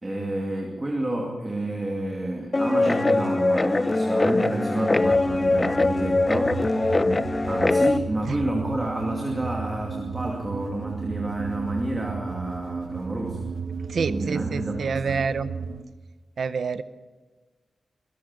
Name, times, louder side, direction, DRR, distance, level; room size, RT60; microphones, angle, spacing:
voice 1, 0.0-6.6 7.5-13.4 14.1-15.2, right 1 dB, 15° right, 0 dB, 2.5 m, -29 dB
Guitar, 2.5-8.0, left 2 dB, 20° left, 0.6 m, -22 dB
sound 1, 5.0-15.8, right 5 dB, 80° right, 1.2 m, -34 dB
voice 2, 13.9-15.5 16.4-16.8, right 5 dB, 60° right, 13 dB, 0.8 m, -27 dB
23.0 x 14.0 x 9.1 m, 1.3 s
wide cardioid pair, 175°, 0 cm